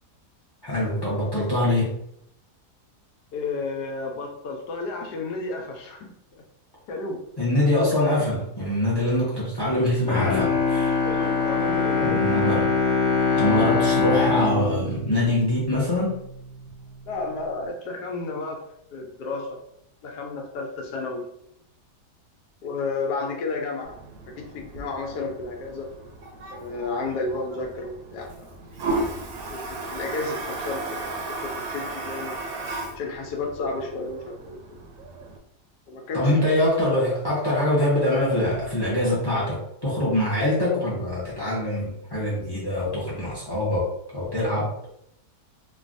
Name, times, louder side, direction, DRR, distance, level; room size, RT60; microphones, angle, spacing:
voice 1, 0.6-2.0 7.4-11.0 12.0-12.7 13.4-16.2 36.1-44.7, left 1 dB, 40° left, -6 dB, 0.3 m, -24 dB
voice 2, 3.3-6.2 6.9-7.3 11.0-12.2 17.1-18.7 18.9-19.6 20.0-21.3 22.6-24.0 24.3-25.9 26.5-28.5 29.5-32.6 33.0-34.8 35.9-36.4, left 3 dB, 80° left, 2 dB, 1.2 m, -32 dB
Bowed string instrument, 10.0-16.2 16.6-16.7, left 4 dB, 65° left, 1.1 m, -23 dB
Toilet flush, 23.8-35.4, right 2 dB, 70° right, 0.9 m, -35 dB
3.1 x 2.2 x 2.5 m, 0.75 s
omnidirectional pair, 1.7 m